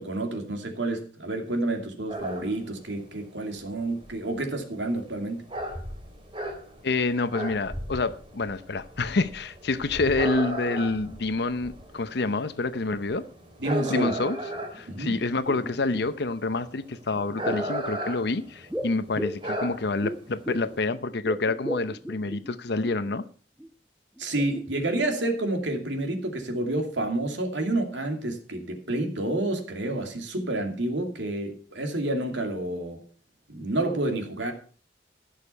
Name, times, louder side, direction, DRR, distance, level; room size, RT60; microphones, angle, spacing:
voice 1, 0.0-5.4 13.6-14.1 14.9-15.2 24.2-33.0 33.5-34.5, right 2 dB, 80° right, 2.6 m, -29 dB
howling dog, 2.1-20.9, right 1 dB, 30° right, 3.2 m, -36 dB
voice 2, 6.8-13.2 13.9-14.4 14.7-23.2, left 3 dB, 65° left, 0.7 m, -27 dB
sound 1, 14.1-14.8 15.2-16.3 17.1-17.8 18.7-20.8 21.1-23.1 23.6-23.7 24.2-25.2 25.5-25.6, right 1 dB, 5° right, 0.5 m, -37 dB
16.0 x 6.6 x 5.6 m
head